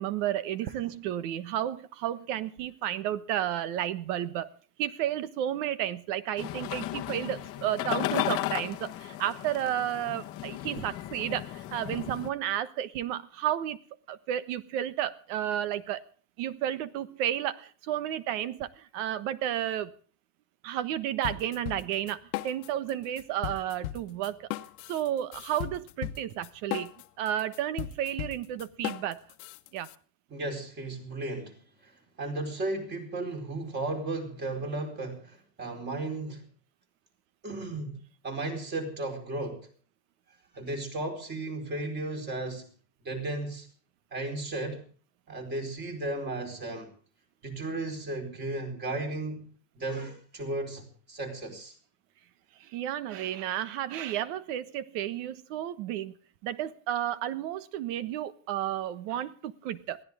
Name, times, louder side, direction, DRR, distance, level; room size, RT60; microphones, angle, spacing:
voice 1, 0.0-4.5 4.8-13.8 14.1-16.0 16.4-19.9 20.6-24.5 24.9-26.9 27.2-29.2 29.7-29.9 52.6-56.1 56.4-60.0, right 11 dB, 50° right, 1.3 m, -32 dB
sound 1, 6.4-12.3, left 14 dB, 30° left, 1.2 m, -35 dB
sound 2, 21.2-22.9 23.2-30.0, left 14 dB, 60° left, 1.3 m, -37 dB
voice 2, 30.3-36.5 37.4-39.7 40.5-42.7 43.0-43.7 44.1-44.8 45.3-46.9 47.4-49.5 49.7-51.8, right 2 dB, 20° right, 4.3 m, -35 dB
22.0 x 16.5 x 3.5 m
supercardioid pair, 175°, 48 cm